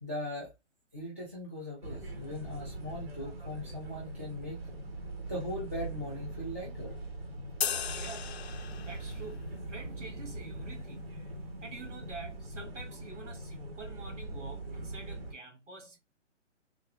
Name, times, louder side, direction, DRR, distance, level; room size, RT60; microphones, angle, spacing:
voice 1, 0.0-0.5 0.9-4.6 5.3-6.9, left 1 dB, 10° right, 0.5 m, -39 dB
sound 1, 1.8-15.3, right 2 dB, 55° right, 1.1 m, -42 dB
sound 2, 7.6-9.2, left 8 dB, 60° left, 0.5 m, -35 dB
voice 2, 7.9-8.3 8.8-11.2 11.6-16.0, right 4 dB, 85° right, 1.9 m, -47 dB
3.7 x 2.2 x 3.2 m
hypercardioid pair, 170°, 36 cm